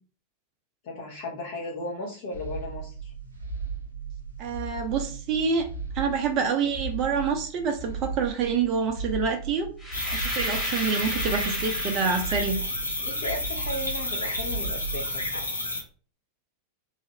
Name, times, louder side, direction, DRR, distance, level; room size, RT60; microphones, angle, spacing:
voice 1, 0.8-3.1 13.0-15.3, left 1 dB, 50° left, -4 dB, 0.8 m, -35 dB
sound 1, 2.3-15.4, right 5 dB, 75° right, 0.7 m, -37 dB
voice 2, 4.4-5.7 5.9-9.7 10.1-12.6, right 5 dB, 40° right, 5 dB, 0.5 m, -27 dB
sound 2, 9.8-12.6, left 1 dB, 5° left, 1.3 m, -34 dB
sound 3, 9.9-15.8, left 1 dB, 80° left, 0.6 m, -31 dB
3.1 x 2.5 x 2.7 m, 0.41 s
figure-of-eight pair, 90°, 0 cm